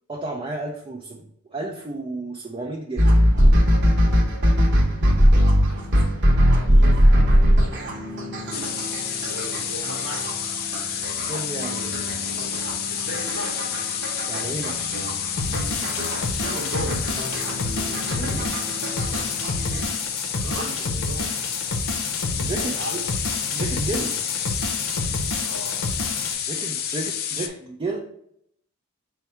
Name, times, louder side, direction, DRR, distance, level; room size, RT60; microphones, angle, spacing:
voice 1, 0.1-3.1 11.2-11.9 14.3-14.9 18.0-18.6 20.4-20.7 22.4-23.0 23.5-24.1 26.5-28.0, right 2 dB, 25° right, 0 dB, 0.4 m, -32 dB
sound 1, 3.0-19.8, equal, 55° right, 0.9 m, -21 dB
voice 2, 5.7-8.8 9.2-10.4 12.9-13.7 16.0-17.0 20.3-21.3 22.5-23.0 25.4-25.9, right 1 dB, 70° right, -1 dB, 1.0 m, -38 dB
sound 2, 8.5-27.5, left 9 dB, 45° left, 0.4 m, -30 dB
sound 3, 15.4-26.3, left 2 dB, 70° left, 0.7 m, -29 dB
4.6 x 2.2 x 4.1 m, 0.71 s
head